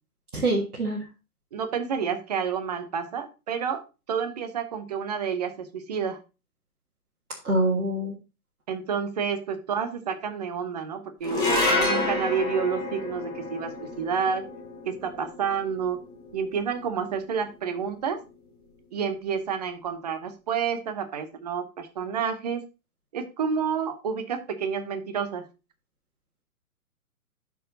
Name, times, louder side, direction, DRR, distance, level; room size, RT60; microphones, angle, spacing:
voice 1, 0.3-1.0 7.4-8.1, right 1 dB, 75° right, -2 dB, 1.7 m, -25 dB
voice 2, 1.5-6.2 8.7-14.4 14.9-16.0 16.3-18.2 18.9-22.6 23.1-25.5, right 6 dB, 30° right, 9 dB, 0.7 m, -29 dB
sound 1, 11.2-17.7, left 2 dB, 10° left, 2.7 m, -30 dB
11.5 x 4.6 x 2.7 m, 0.29 s
figure-of-eight pair, 130°, 44 cm